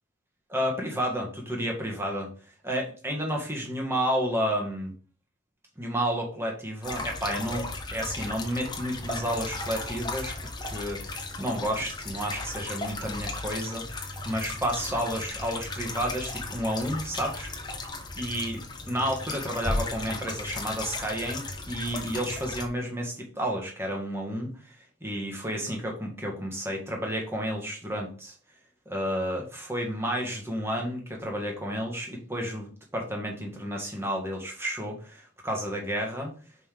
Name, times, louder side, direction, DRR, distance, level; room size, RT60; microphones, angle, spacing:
voice 1, 0.5-2.3 2.6-4.9 5.8-10.4 10.6-17.5 18.1-18.6 18.9-28.3 28.8-36.3, equal, 10° right, 0 dB, 1.5 m, -31 dB
sound 1, 6.8-22.7, left 2 dB, 20° left, 0.9 m, -36 dB
5.5 x 5.1 x 3.8 m, 0.40 s
head